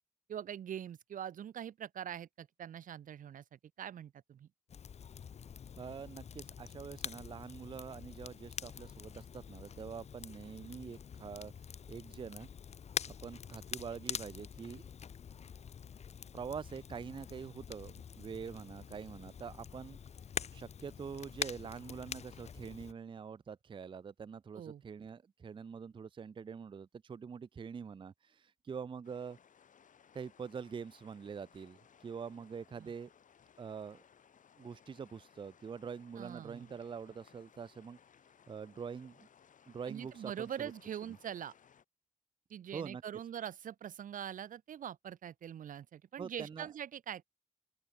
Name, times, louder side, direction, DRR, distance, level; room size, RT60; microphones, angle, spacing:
voice 1, 0.3-4.5 24.5-24.8 32.8-32.9 36.2-36.7 39.9-41.5 42.5-47.2, right 9 dB, 90° right, 0.7 m, -43 dB
Crackle, 4.7-22.9, left 7 dB, 55° left, 0.4 m, -45 dB
voice 2, 5.8-11.5 11.9-12.5 13.2-14.9 16.3-20.0 20.5-29.4 30.1-33.1 33.6-34.0 34.6-38.0 38.5-39.3 39.7-40.7 42.7-43.0 46.2-46.7, right 6 dB, 40° right, 0.3 m, -45 dB
sound 1, 29.0-41.8, left 7 dB, 80° left, 1.0 m, -64 dB
open air
cardioid pair, 50°, 13 cm